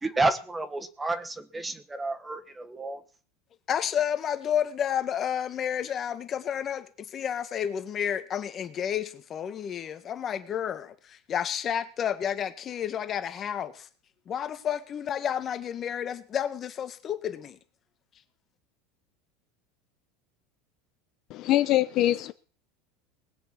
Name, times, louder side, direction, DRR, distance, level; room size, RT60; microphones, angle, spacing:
voice 1, 0.0-3.0, right 2 dB, 10° right, 1.1 m, -30 dB
voice 2, 3.7-13.9 14.3-17.6, left 9 dB, 30° left, 1.7 m, -31 dB
voice 3, 21.3-22.3, left 14 dB, 45° left, 0.8 m, -23 dB
19.5 x 6.9 x 8.3 m
supercardioid pair, 145°, 0 cm